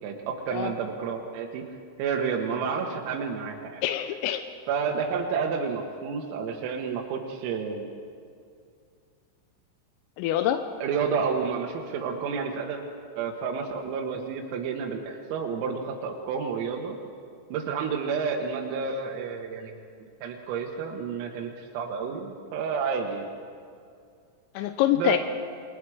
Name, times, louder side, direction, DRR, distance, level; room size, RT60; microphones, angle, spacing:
voice 1, 0.0-1.6 2.0-3.8 4.7-7.9 10.8-12.8 13.2-17.0 17.5-23.3 24.9-25.2, right 5 dB, 90° right, 0 dB, 4.1 m, -30 dB
voice 2, 3.8-4.4 10.2-10.6 24.6-25.2, left 12 dB, 85° left, 8 dB, 3.4 m, -25 dB
28.0 x 24.5 x 4.9 m, 2.3 s
omnidirectional pair, 5.9 m